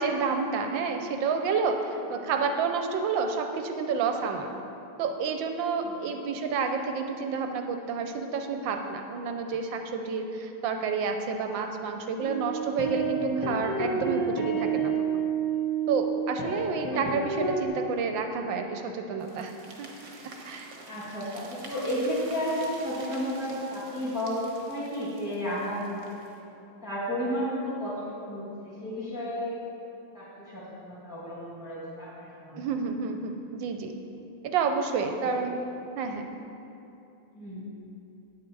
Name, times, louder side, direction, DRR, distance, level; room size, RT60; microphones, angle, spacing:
voice 1, 0.0-4.5 5.0-14.9 15.9-19.5 19.8-19.9 20.4-20.7 32.6-33.9 34.4-35.6 36.0-36.3, right 5 dB, 70° right, 5 dB, 1.3 m, -29 dB
sound 1, 12.2-17.7, right 5 dB, 15° left, 0.8 m, -29 dB
sound 2, 19.2-26.4, right 2 dB, 45° right, 1.2 m, -47 dB
voice 2, 20.9-26.3 26.8-29.6 30.1-32.7 35.2-35.4 37.3-37.7, equal, ahead, -10 dB, 2.3 m, -33 dB
9.0 x 8.5 x 4.7 m, 2.8 s
omnidirectional pair, 2.3 m